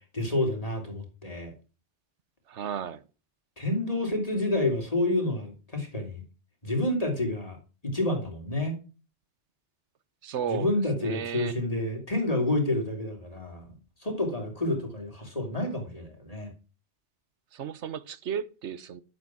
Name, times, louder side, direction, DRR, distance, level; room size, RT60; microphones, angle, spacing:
voice 1, 0.1-1.5 3.6-6.2 6.6-7.6 7.8-8.8 10.5-13.7 14.0-16.5, left 1 dB, 30° left, 3.3 m, -29 dB
voice 2, 2.5-3.0 10.2-11.6 17.5-19.0, right 8 dB, 85° right, 1.2 m, -34 dB
12.0 x 8.2 x 6.1 m
omnidirectional pair, 1.2 m